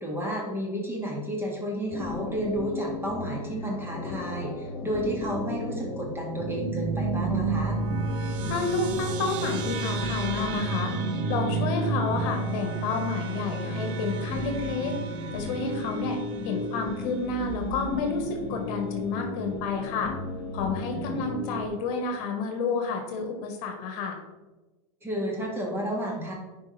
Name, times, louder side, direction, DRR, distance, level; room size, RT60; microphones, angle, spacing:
voice 1, 0.0-7.8 20.8-21.2 25.0-26.3, right 1 dB, 10° right, -2 dB, 2.2 m, -31 dB
sound 1, 1.9-21.7, left 3 dB, 30° left, 1.1 m, -35 dB
sound 2, 6.4-17.2, right 5 dB, 50° right, 0.8 m, -31 dB
voice 2, 8.5-10.9 11.3-14.9 15.3-16.2 16.4-20.1 20.5-24.2, left 4 dB, 55° left, 3 dB, 1.5 m, -30 dB
10.0 x 4.9 x 3.4 m, 1.2 s
supercardioid pair, 120°, 19 cm